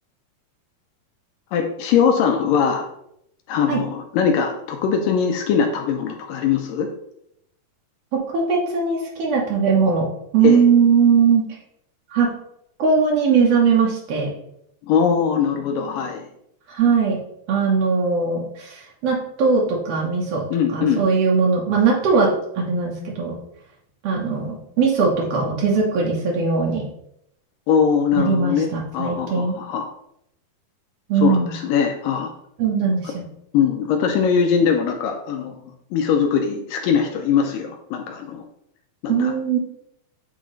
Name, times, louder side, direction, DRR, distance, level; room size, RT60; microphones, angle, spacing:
voice 1, 1.5-2.9 3.5-6.9 10.4-10.6 14.8-16.3 20.5-21.1 27.7-29.9 31.2-32.3 33.0-33.1 33.5-35.6 35.9-38.4 39.0-39.3, left 7 dB, 80° left, 4 dB, 2.0 m, -21 dB
voice 2, 8.1-10.1 10.3-11.4 12.1-12.3 12.8-14.3 16.7-17.2 17.5-20.4 20.7-22.3 22.5-23.3 24.0-26.9 28.2-29.5 31.1-31.5 32.6-33.2 39.1-39.6, right 5 dB, 85° right, -2 dB, 1.3 m, -19 dB
9.0 x 3.8 x 3.1 m, 0.76 s
omnidirectional pair, 4.4 m